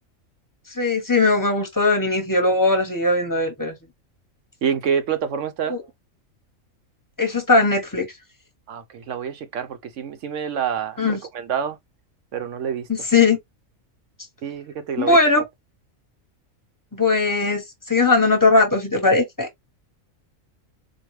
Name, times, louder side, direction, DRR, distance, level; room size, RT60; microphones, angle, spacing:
voice 1, 0.7-3.8 5.7-5.8 7.2-8.1 11.0-11.2 12.9-13.4 15.0-15.4 16.9-19.5, left 3 dB, 15° left, 1.0 m, -19 dB
voice 2, 4.6-5.8 8.7-11.8 12.3-12.9 14.4-15.4, right 7 dB, 65° right, 1.0 m, -27 dB
4.6 x 2.3 x 3.1 m
omnidirectional pair, 1.4 m